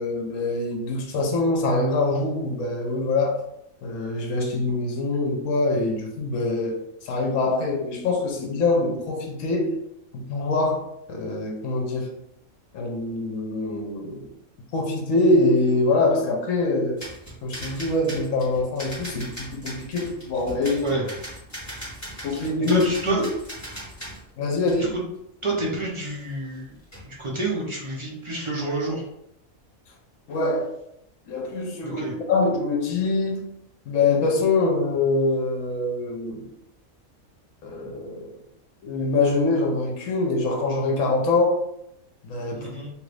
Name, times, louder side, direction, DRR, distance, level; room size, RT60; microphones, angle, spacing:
voice 1, 0.0-3.4 3.8-9.8 10.3-10.8 11.1-12.1 12.7-14.3 14.7-17.0 17.4-20.9 22.2-23.3 24.4-25.0 30.3-30.7 31.3-33.5 33.9-36.5 37.6-38.3 38.8-41.6 42.2-42.7, left 2 dB, 70° left, 1.1 m, -24 dB
sound 1, 17.0-24.2 24.7-25.0 26.3-26.6 26.8-27.1, equal, 10° left, 1.4 m, -39 dB
voice 2, 22.7-23.2 25.4-26.7 27.0-29.0 31.8-32.1 42.5-42.9, right 2 dB, 45° right, 0.4 m, -28 dB
3.0 x 2.5 x 3.2 m
omnidirectional pair, 1.5 m